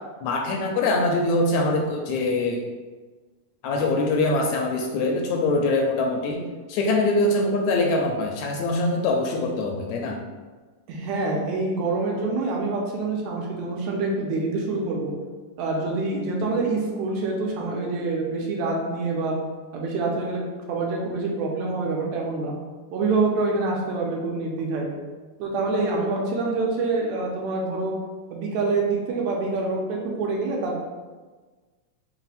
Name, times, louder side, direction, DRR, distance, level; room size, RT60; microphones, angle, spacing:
voice 1, 0.2-2.6 3.6-6.4 6.7-10.2, left 2 dB, 80° left, 1 dB, 1.7 m, -23 dB
voice 2, 10.9-15.1 15.6-19.4 19.7-20.4 20.7-22.5 22.9-24.9 25.4-27.9 28.3-30.8, right 3 dB, 75° right, -1 dB, 1.8 m, -26 dB
4.7 x 2.1 x 4.0 m, 1.3 s
omnidirectional pair, 3.4 m